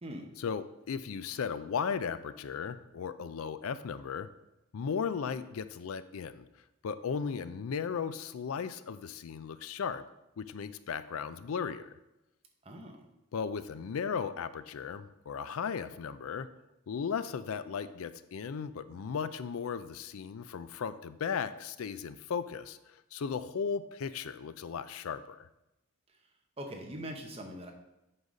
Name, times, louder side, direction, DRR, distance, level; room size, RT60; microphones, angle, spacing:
voice 1, 0.4-4.3 4.7-6.5 6.8-10.0 10.4-11.9 13.3-16.5 16.9-22.8 23.1-25.5, left 6 dB, 85° left, 13 dB, 0.4 m, -36 dB
voice 2, 12.6-13.0 26.1-26.3 26.6-27.7, equal, 30° right, 3 dB, 0.9 m, -42 dB
7.9 x 4.0 x 5.1 m, 0.93 s
head